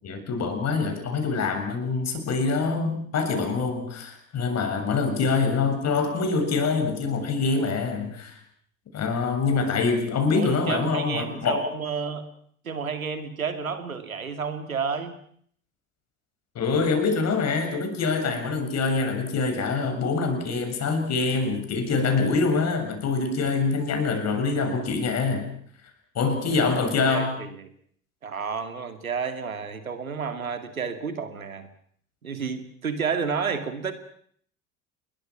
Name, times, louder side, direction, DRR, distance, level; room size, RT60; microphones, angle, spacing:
voice 1, 0.0-8.4 8.9-11.7 16.6-25.5 26.2-27.4, left 4 dB, 40° left, 6 dB, 7.3 m, -25 dB
voice 2, 10.4-12.2 12.6-15.2 26.8-27.7 28.2-31.7 32.2-33.9, right 6 dB, 85° right, 8 dB, 2.6 m, -31 dB
29.5 x 22.0 x 6.0 m, 0.63 s
figure-of-eight pair, 70°, 41 cm